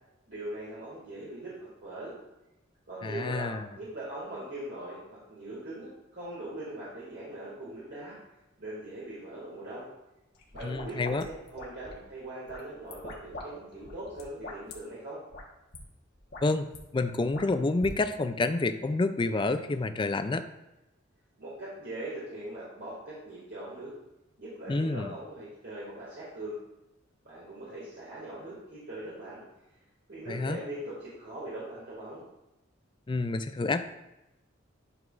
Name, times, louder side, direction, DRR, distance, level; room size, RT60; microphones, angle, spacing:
voice 1, 0.3-2.1 2.9-8.2 8.6-9.9 10.5-15.2 21.4-23.9 24.4-26.5 27.2-29.4 30.1-32.2, right 1 dB, 55° right, -8 dB, 2.1 m, -41 dB
voice 2, 3.0-3.7 10.6-11.3 16.4-16.7 16.9-20.4 24.7-25.1 30.3-30.6 33.1-33.8, left 3 dB, 25° left, 10 dB, 0.4 m, -28 dB
sound 1, 10.3-12.0 12.5-13.5 13.7-14.7 15.3-15.4 15.7-15.8 16.2-16.8 17.3-17.9, left 2 dB, 55° left, 1.3 m, -43 dB
10.5 x 5.8 x 2.5 m, 0.95 s
head